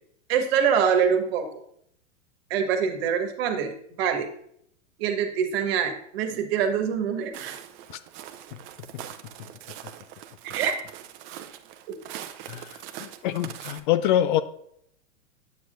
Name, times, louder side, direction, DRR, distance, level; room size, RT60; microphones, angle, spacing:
voice 1, 0.3-1.5 2.5-3.7 4.0-4.3 5.0-7.5 10.5-10.7 11.9-12.0, right 7 dB, 50° right, 1.4 m, -24 dB
Walk footsteps, 7.3-13.8, right 11 dB, 30° right, 0.6 m, -41 dB
voice 2, 12.5-14.4, left 11 dB, 40° left, 0.4 m, -25 dB
8.4 x 7.4 x 2.5 m
hypercardioid pair, 110°, 38 cm